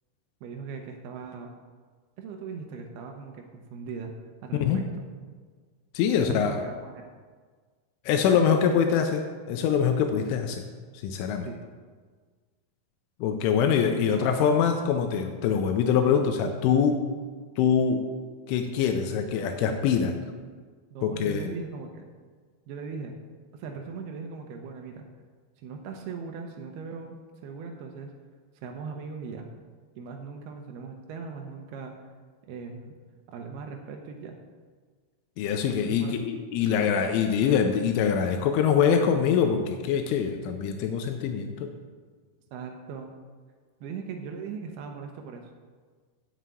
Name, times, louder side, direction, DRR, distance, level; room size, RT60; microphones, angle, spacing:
voice 1, 0.4-1.5 2.2-4.1 4.4-5.0 6.2-7.1 8.3-8.9 11.5-11.6 14.0-14.3 16.0-16.2 20.9-22.0 22.7-23.2 23.5-25.1 25.6-28.1 28.6-29.5 30.0-32.1 32.4-33.0 33.3-34.4 35.8-36.1 42.5-43.1 43.8-45.5, right 5 dB, 90° right, 3 dB, 2.2 m, -39 dB
voice 2, 5.9-6.6 8.1-10.6 11.0-11.5 13.2-17.0 17.6-18.0 18.5-20.2 21.0-21.4 35.4-41.7, left 7 dB, 85° left, 5 dB, 3.1 m, -24 dB
7.6 x 7.3 x 8.2 m, 1.5 s
omnidirectional pair, 5.6 m